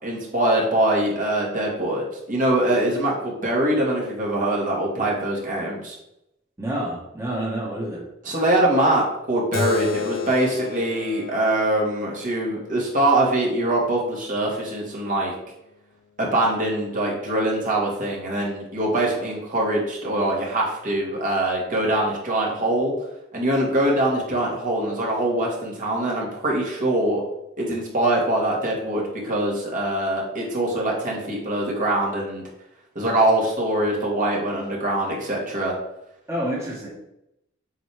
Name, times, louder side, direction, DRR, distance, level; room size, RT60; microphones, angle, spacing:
voice 1, 0.0-2.0 2.3-6.0 8.3-15.3 16.2-22.9 23.3-27.2 27.6-32.4 33.0-35.7, right 1 dB, 40° right, -3 dB, 2.0 m, -23 dB
voice 2, 6.6-8.0 36.3-36.9, right 1 dB, 15° right, -5 dB, 1.7 m, -28 dB
Keyboard (musical), 9.5-14.6, left 7 dB, 70° left, 0.7 m, -33 dB
7.8 x 5.2 x 3.5 m, 0.84 s
head